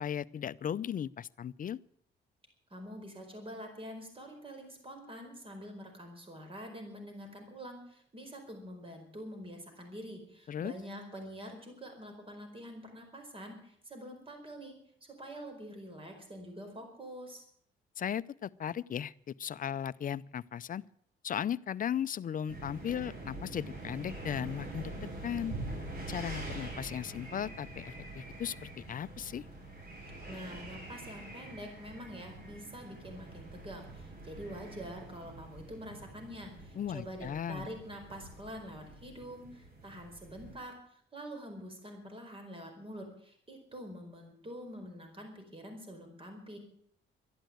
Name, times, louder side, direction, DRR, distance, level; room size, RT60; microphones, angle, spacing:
voice 1, 0.0-1.8 10.5-10.7 18.0-20.8 21.2-25.6 26.1-29.4 36.8-37.7, left 9 dB, 45° left, 17 dB, 0.6 m, -36 dB
voice 2, 2.7-14.8 15.1-17.4 30.3-46.6, equal, 25° right, 4 dB, 4.7 m, -46 dB
sound 1, 22.5-40.6, right 2 dB, 55° right, 7.7 m, -45 dB
13.0 x 11.5 x 9.2 m, 0.66 s
cardioid pair, 90°, 20 cm